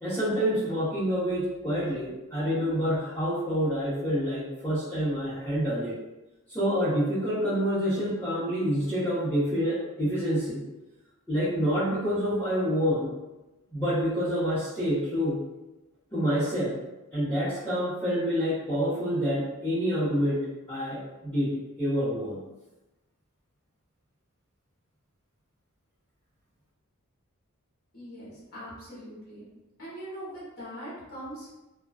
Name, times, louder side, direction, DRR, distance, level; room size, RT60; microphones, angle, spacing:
voice 1, 0.0-5.9 6.5-10.6 11.3-13.1 13.7-15.4 16.1-16.8 17.1-22.4, equal, 10° left, -16 dB, 0.8 m, -27 dB
voice 2, 27.9-29.5 29.8-31.5, equal, 45° left, -9 dB, 0.9 m, -41 dB
2.4 x 2.2 x 2.3 m, 1.0 s
head